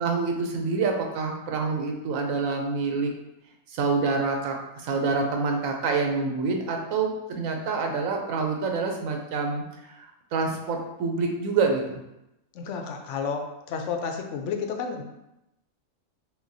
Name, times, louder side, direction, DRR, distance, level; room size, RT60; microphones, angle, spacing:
voice 1, 0.0-3.1 3.7-12.0, right 4 dB, 85° right, 2 dB, 1.1 m, -27 dB
voice 2, 12.6-15.0, left 5 dB, 70° left, 5 dB, 0.8 m, -31 dB
5.9 x 2.3 x 2.6 m, 0.90 s
omnidirectional pair, 1.4 m